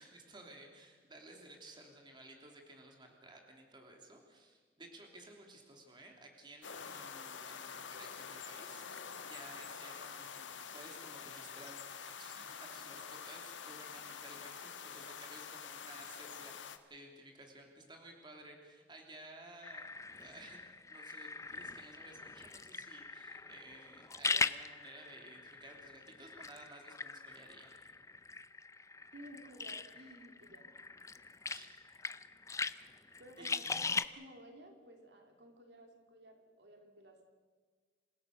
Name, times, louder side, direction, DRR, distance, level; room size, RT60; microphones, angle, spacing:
voice 1, 0.0-11.9 12.2-27.7 31.5-31.7 33.4-33.7, right 1 dB, 25° right, 2 dB, 3.1 m, -55 dB
sound 1, 6.6-16.8, left 6 dB, 85° left, 1.4 m, -47 dB
sound 2, 19.6-34.1, left 4 dB, 15° left, 0.5 m, -41 dB
voice 2, 29.1-30.7 33.2-37.2, right 1 dB, 65° right, 4 dB, 3.0 m, -55 dB
27.5 x 16.5 x 6.6 m, 1.5 s
head